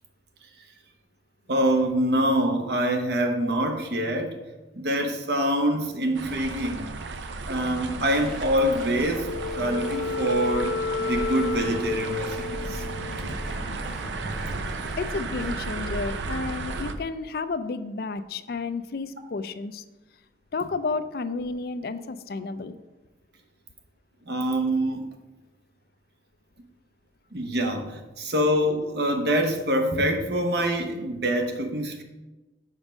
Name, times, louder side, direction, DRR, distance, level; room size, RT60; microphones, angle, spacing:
voice 1, 1.5-4.4 4.7-6.9 7.5-12.8 13.2-13.4 24.3-25.1 27.3-32.0, equal, 65° right, 4 dB, 0.9 m, -25 dB
sound 1, 6.1-16.9, right 3 dB, 85° right, 0.6 m, -34 dB
sound 2, 7.6-15.6, equal, ahead, 0.6 m, -44 dB
Wind instrument woodwind instrument, 9.0-13.5, left 3 dB, 85° left, 1.0 m, -31 dB
voice 2, 15.0-19.8 20.5-22.8, left 4 dB, 55° left, 11 dB, 0.4 m, -31 dB
5.2 x 5.1 x 6.2 m, 1.1 s
head